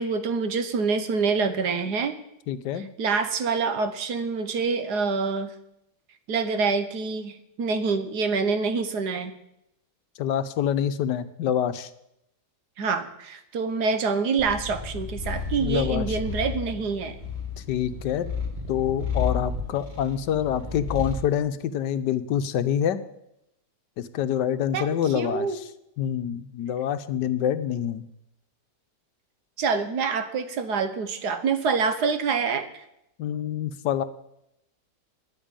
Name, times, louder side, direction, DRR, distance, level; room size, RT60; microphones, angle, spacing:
voice 1, 0.0-2.1 3.0-5.5 6.3-9.3 12.8-17.1 24.7-24.9 25.1-25.6 29.6-32.7, right 5 dB, 65° right, 10 dB, 1.5 m, -26 dB
voice 2, 2.5-2.9 10.2-11.9 15.6-16.2 17.7-18.3 18.7-23.0 24.0-25.6 26.0-28.0 33.2-34.0, left 9 dB, 80° left, 11 dB, 1.3 m, -26 dB
Purr, 14.4-21.3, left 4 dB, 25° right, 2.1 m, -32 dB
10.5 x 8.8 x 8.9 m, 0.83 s
omnidirectional pair, 1.9 m